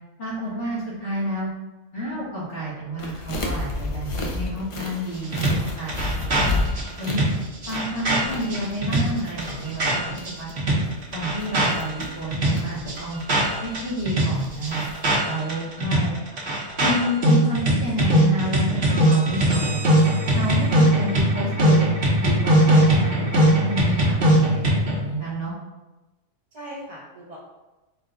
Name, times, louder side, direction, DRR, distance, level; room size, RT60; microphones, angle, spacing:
voice 1, 0.2-1.5 1.9-6.5 7.0-7.2 7.7-10.1 10.4-10.5 11.1-13.2 13.6-14.8 15.2-16.1 16.8-19.8 20.3-25.5, equal, 75° left, -8 dB, 1.6 m, -30 dB
sound 1, 3.0-15.2, left 2 dB, 45° left, 0.4 m, -33 dB
sound 2, 5.3-10.3 10.6-13.8 14.1-25.0, right 1 dB, 60° right, 1.2 m, -20 dB
voice 2, 15.8-16.4 26.5-27.4, equal, 80° right, -7 dB, 1.3 m, -39 dB
4.4 x 2.2 x 3.7 m, 1.1 s
omnidirectional pair, 1.2 m